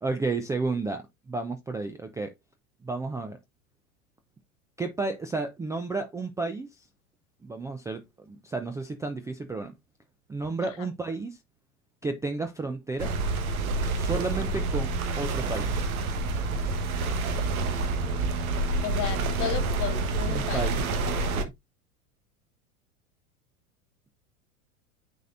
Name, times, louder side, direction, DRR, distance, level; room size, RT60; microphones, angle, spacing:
voice 1, 0.0-2.3 2.8-3.4 4.8-6.9 7.4-9.8 10.3-11.4 12.0-13.1 13.8-15.9 20.3-20.8 21.4-21.5, right 3 dB, 5° right, 0.4 m, -32 dB
sound 1, 13.0-21.4, right 3 dB, 70° right, 1.3 m, -28 dB
voice 2, 18.8-20.7, left 10 dB, 45° left, 1.7 m, -34 dB
9.0 x 4.4 x 2.5 m
hypercardioid pair, 90°, 44 cm